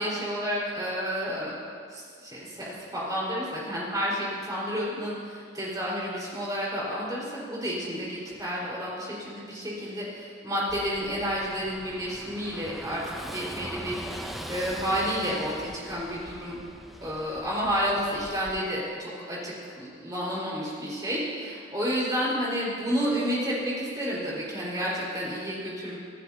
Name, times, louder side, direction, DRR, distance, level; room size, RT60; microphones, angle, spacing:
voice 1, 0.0-1.5 1.9-16.6 17.0-26.0, equal, 20° right, -6 dB, 4.9 m, -30 dB
Car passing by / Engine, 10.7-18.6, equal, ahead, 0.7 m, -41 dB
25.5 x 15.0 x 2.9 m, 2.2 s
head